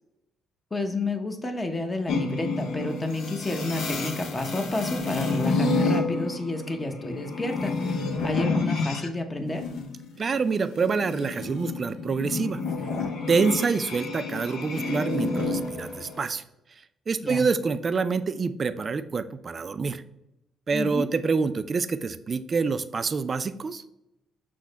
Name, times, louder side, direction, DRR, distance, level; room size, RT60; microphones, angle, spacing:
voice 1, 0.7-9.7 17.2-17.5 20.7-21.1, left 2 dB, 25° left, 5 dB, 0.8 m, -30 dB
sound 1, 2.1-9.1 9.4-16.3, left 3 dB, 75° left, 0.7 m, -30 dB
voice 2, 10.2-12.6 13.3-16.4 17.1-20.0 20.7-23.8, right 5 dB, 45° right, 12 dB, 0.3 m, -26 dB
6.1 x 2.1 x 3.9 m, 0.87 s
supercardioid pair, 70°, 0 cm